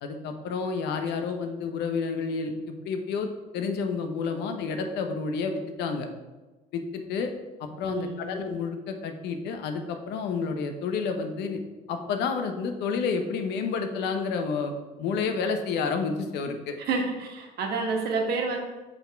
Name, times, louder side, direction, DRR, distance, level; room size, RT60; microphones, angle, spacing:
voice 1, 0.0-2.5 2.8-3.3 3.5-6.1 6.7-7.3 7.6-11.6 11.9-16.8, left 5 dB, 80° left, 6 dB, 0.8 m, -30 dB
voice 2, 7.9-8.2 16.8-18.6, right 4 dB, 70° right, 1 dB, 1.3 m, -29 dB
5.7 x 4.1 x 4.4 m, 1.2 s
cardioid pair, 110°, 17 cm